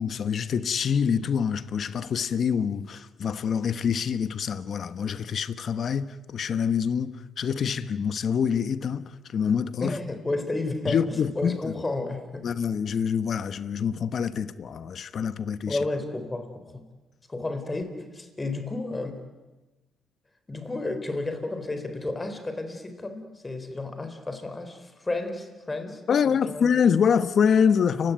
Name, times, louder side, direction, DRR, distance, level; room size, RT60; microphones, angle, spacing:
voice 1, 0.0-6.1 6.3-9.9 10.9-11.7 12.4-15.8 26.1-28.1, left 7 dB, 55° left, 1.3 m, -25 dB
voice 2, 9.8-12.5 15.7-16.8 17.3-19.2 20.5-26.7, left 2 dB, 20° left, 4.2 m, -32 dB
30.0 x 17.0 x 9.4 m
cardioid pair, 90°, 0 cm